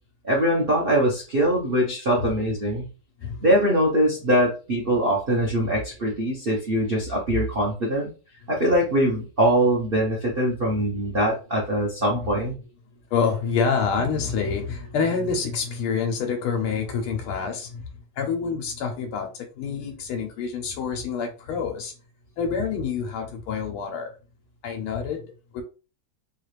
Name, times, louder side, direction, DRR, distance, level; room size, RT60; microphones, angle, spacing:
voice 1, 0.2-2.9 3.4-8.1 8.5-12.6, equal, 55° right, 0.6 m, -22 dB
voice 2, 13.1-17.8 18.2-21.9 22.4-24.1 24.6-25.6, left 5 dB, 90° left, 1.6 m, -27 dB
4.6 x 2.4 x 3.2 m
omnidirectional pair, 2.3 m